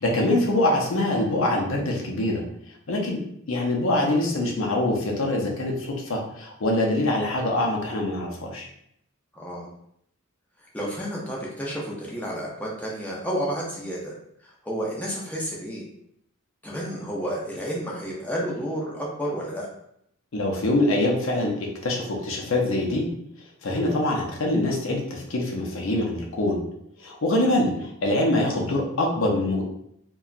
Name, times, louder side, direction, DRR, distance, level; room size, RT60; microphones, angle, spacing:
voice 1, 0.0-2.4 2.9-3.2 3.5-8.7 20.3-23.1 23.6-26.6 27.0-29.6, left 1 dB, 65° left, 0 dB, 0.6 m, -24 dB
voice 2, 9.3-9.7 10.7-14.1 14.4-15.9 16.6-19.7, equal, 5° left, -4 dB, 0.5 m, -31 dB
2.8 x 2.2 x 2.4 m, 0.74 s
head